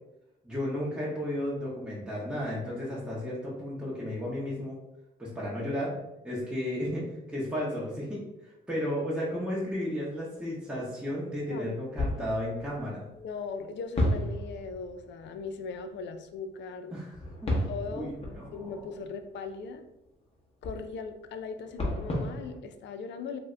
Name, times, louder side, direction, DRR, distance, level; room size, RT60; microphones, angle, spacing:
voice 1, 0.4-4.8 5.2-5.9 6.2-13.1 16.9-17.2 17.4-17.6 17.9-18.7, left 1 dB, 5° right, -7 dB, 0.8 m, -33 dB
sound 1, 9.5-9.6 11.9-13.5 14.0-15.9 17.0-22.6, left 1 dB, 30° left, 0.9 m, -33 dB
voice 2, 13.2-16.9 17.7-18.2 18.5-19.8 20.6-23.4, left 5 dB, 65° left, 7 dB, 0.4 m, -39 dB
2.6 x 2.5 x 3.2 m, 0.91 s
cardioid pair, 90°, 20 cm